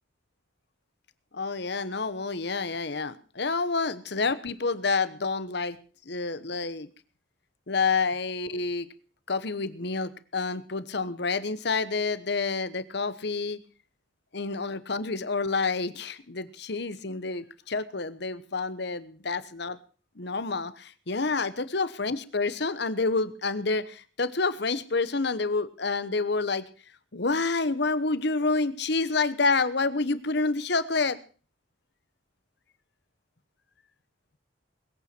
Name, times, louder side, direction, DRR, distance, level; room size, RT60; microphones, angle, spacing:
voice 1, 1.3-5.8 6.1-6.9 7.7-8.9 9.3-13.6 14.3-19.8 20.2-26.6 27.1-31.2, left 3 dB, 60° left, 15 dB, 1.1 m, -28 dB
21.0 x 9.0 x 6.1 m, 0.39 s
head